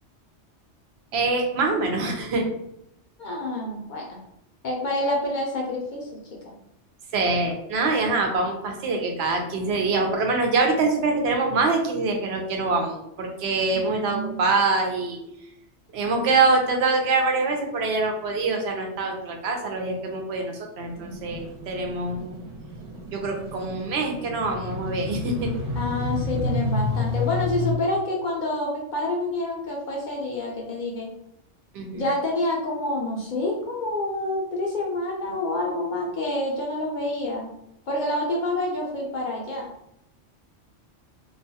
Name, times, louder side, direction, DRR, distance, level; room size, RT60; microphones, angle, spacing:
voice 1, 1.1-2.4 7.1-15.2 15.9-22.4 23.1-25.5 31.7-32.0, right 3 dB, 70° right, 3 dB, 0.8 m, -24 dB
voice 2, 3.2-4.2 4.6-6.2 13.7-14.4 25.7-31.1 31.9-37.5 37.9-39.7, left 1 dB, 60° left, -2 dB, 0.5 m, -28 dB
sound 1, 20.9-27.7, left 3 dB, 90° right, 1.0 m, -30 dB
2.3 x 2.2 x 2.7 m, 0.79 s
omnidirectional pair, 1.2 m